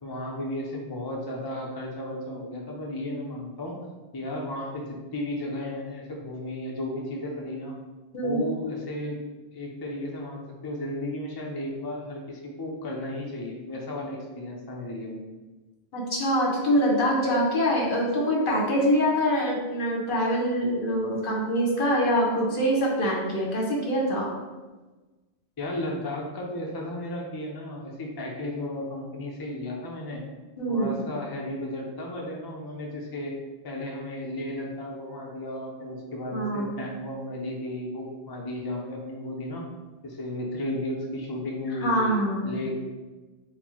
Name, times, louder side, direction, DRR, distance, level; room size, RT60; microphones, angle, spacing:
voice 1, 0.0-3.8 4.1-7.7 8.2-9.2 9.5-15.2 25.6-30.2 30.7-33.4 33.6-39.6 40.0-42.2 42.4-42.7, left 1 dB, 30° left, -1 dB, 0.4 m, -34 dB
voice 2, 15.9-24.3 30.6-31.0 36.3-36.7 41.8-42.7, equal, 55° left, -3 dB, 1.1 m, -24 dB
4.2 x 2.1 x 4.3 m, 1.2 s
omnidirectional pair, 1.1 m